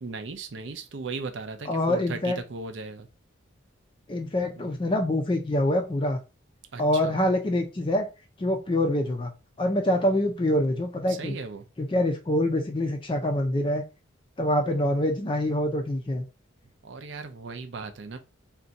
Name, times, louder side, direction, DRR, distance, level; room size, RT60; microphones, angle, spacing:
voice 1, 0.0-3.1 4.6-4.7 6.7-7.1 11.1-11.7 16.8-18.2, right 4 dB, 65° right, 0.5 m, -37 dB
voice 2, 1.7-2.4 4.1-6.2 6.8-8.1 8.4-9.3 9.6-11.4 11.8-13.8 14.4-16.2, left 1 dB, 25° left, 0.4 m, -25 dB
2.5 x 2.2 x 3.9 m
head